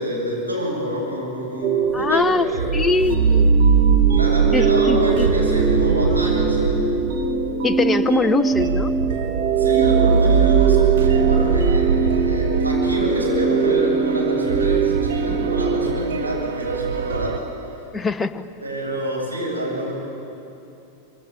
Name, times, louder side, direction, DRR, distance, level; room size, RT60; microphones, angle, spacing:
voice 1, 0.0-2.7 4.1-6.8 9.6-17.4 18.6-19.9, equal, 85° right, -3 dB, 7.8 m, -27 dB
sound 1, 1.6-15.9, right 6 dB, 15° right, 2.2 m, -22 dB
voice 2, 1.9-2.5 2.7-3.5 4.5-5.3 7.6-8.9 17.9-18.5, left 3 dB, 15° left, 9 dB, 1.0 m, -22 dB
sound 2, 1.9-17.4, right 5 dB, 60° right, 1.6 m, -22 dB
26.0 x 24.0 x 9.0 m, 2.8 s
figure-of-eight pair, 90°, 0 cm